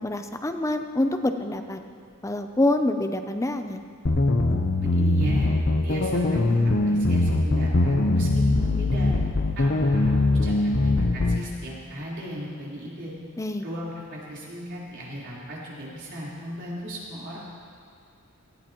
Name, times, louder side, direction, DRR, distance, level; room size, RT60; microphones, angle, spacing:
voice 1, 0.0-1.8 2.2-3.8 13.4-13.6, left 1 dB, 15° left, 7 dB, 0.6 m, -26 dB
sound 1, 4.1-11.4, left 2 dB, 50° left, 0.8 m, -22 dB
voice 2, 4.8-5.5 5.8-9.1 9.6-13.1 13.6-17.4, equal, 55° right, -7 dB, 4.0 m, -36 dB
19.0 x 14.5 x 3.1 m, 2.4 s
head